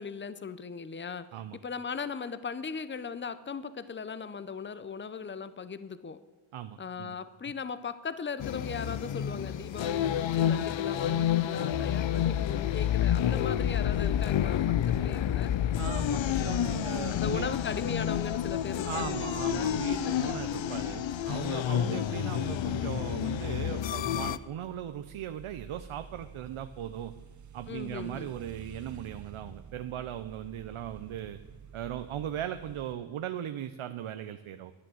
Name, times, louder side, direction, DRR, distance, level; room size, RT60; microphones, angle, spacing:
voice 1, 0.0-6.2 6.8-14.6 14.9-15.5 17.1-19.8 20.1-20.3 21.6-22.1 27.7-28.3, left 5 dB, 25° left, 14 dB, 0.7 m, -38 dB
voice 2, 6.5-7.2 7.4-7.5 15.8-17.6 18.8-27.1 27.5-31.4 31.7-34.7, right 10 dB, 80° right, 9 dB, 0.8 m, -38 dB
sound 1, 8.4-24.4, left 10 dB, 65° left, 0.6 m, -29 dB
sound 2, 16.7-32.9, right 7 dB, 35° right, 0.7 m, -51 dB
11.5 x 10.0 x 7.8 m, 1.4 s
wide cardioid pair, 100°, 49 cm